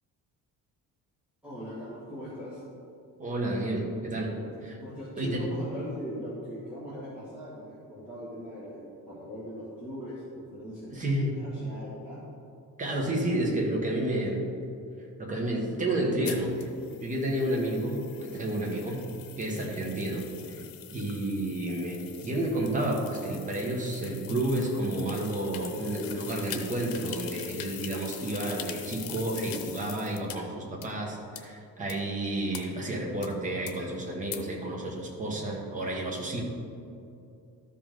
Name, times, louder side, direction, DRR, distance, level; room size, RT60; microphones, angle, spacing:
voice 1, 1.4-2.6 4.4-4.5 4.8-12.2, equal, 5° right, -13 dB, 2.0 m, -40 dB
voice 2, 3.2-4.4 4.6-4.8 5.2-5.5 10.9-11.4 12.8-14.4 15.2-16.7 17.0-19.1 19.4-20.6 20.9-36.4, right 1 dB, 25° right, -1 dB, 1.3 m, -30 dB
sound 1, 16.2-30.4 30.8-30.9 31.4-31.5 31.9-32.0 32.5-32.6 33.2-33.3 33.7-33.8 34.3-34.4, left 9 dB, 85° left, 0.9 m, -43 dB
13.0 x 5.3 x 3.8 m, 2.6 s
cardioid pair, 170°, 34 cm